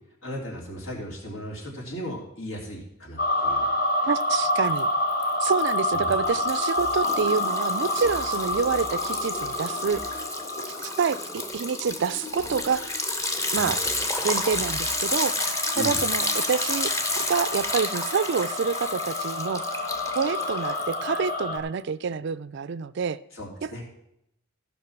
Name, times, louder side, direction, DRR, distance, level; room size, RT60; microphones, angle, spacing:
voice 1, 0.2-3.7 5.9-6.1 13.5-13.7 15.7-16.0 23.3-23.8, equal, 75° left, -2 dB, 3.4 m, -36 dB
sound 1, 3.2-11.8 12.9-21.6, left 1 dB, 45° left, 1.3 m, -29 dB
voice 2, 4.0-4.9 5.4-10.0 10.8-13.0 13.5-13.8 14.2-15.4 15.8-19.6 20.2-23.2 23.6-23.8, right 6 dB, 60° right, 18 dB, 0.4 m, -27 dB
Liquid, 4.2-4.8 5.1-21.3, left 2 dB, 15° left, 0.9 m, -31 dB
15.0 x 5.5 x 5.9 m, 0.78 s
head